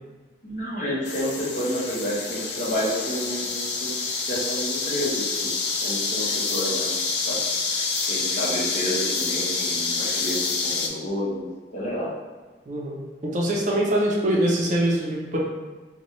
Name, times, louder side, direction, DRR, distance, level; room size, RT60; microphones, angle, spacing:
voice 1, 0.4-3.9 4.3-5.5 5.8-7.0 7.3-7.4 8.1-12.1, equal, 45° left, -6 dB, 1.0 m, -30 dB
sound 1, 1.0-10.9, left 4 dB, 75° left, 0.5 m, -27 dB
voice 2, 12.7-13.0 13.2-15.4, right 1 dB, 45° right, -2 dB, 0.5 m, -23 dB
4.1 x 2.2 x 3.0 m, 1.3 s
head